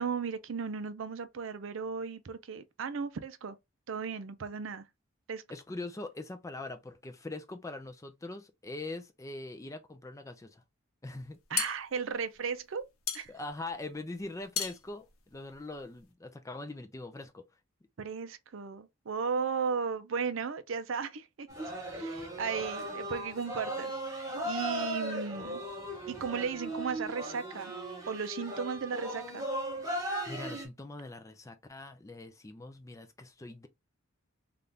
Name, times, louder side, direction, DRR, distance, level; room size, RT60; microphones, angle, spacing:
voice 1, 0.0-3.6 3.9-4.8 5.3-5.4 11.5-12.9 13.1-13.3 18.0-25.6 26.1-27.7 28.1-29.5, right 6 dB, 65° right, 0.5 m, -35 dB
voice 2, 5.5-10.6 11.0-11.7 13.3-17.4 30.3-33.7, left 2 dB, 15° left, 0.4 m, -42 dB
sound 1, 11.2-16.1, left 8 dB, 90° left, 0.7 m, -38 dB
sound 2, 21.5-30.7, right 1 dB, 15° right, 0.9 m, -37 dB
3.5 x 2.4 x 2.7 m
head